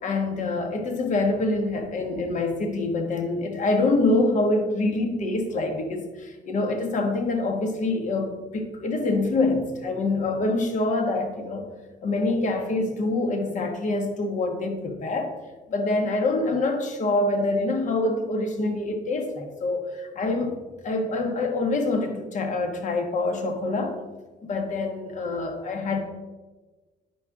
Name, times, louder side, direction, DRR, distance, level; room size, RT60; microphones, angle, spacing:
voice 1, 0.0-11.7 12.0-15.3 15.7-20.5 20.8-24.0 24.4-26.0, left 2 dB, 45° left, 4 dB, 1.3 m, -25 dB
9.6 x 6.3 x 3.6 m, 1.2 s
cardioid pair, 110°, 17 cm